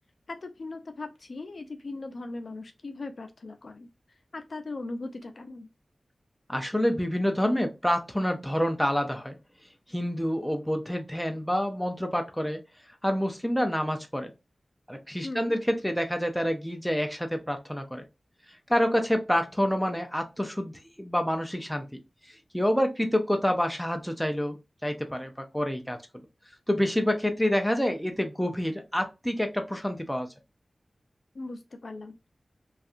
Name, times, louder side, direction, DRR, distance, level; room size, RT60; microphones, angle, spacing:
voice 1, 0.3-3.9 4.3-5.7 15.2-15.5 31.3-32.3, left 2 dB, 60° left, 0.4 m, -39 dB
voice 2, 6.5-9.4 9.9-12.6 13.0-14.3 14.9-18.0 18.7-22.0 22.5-24.6 24.8-26.0 26.7-30.3, equal, 5° left, 0.5 m, -27 dB
2.6 x 2.4 x 2.4 m
wide cardioid pair, 90°, 0 cm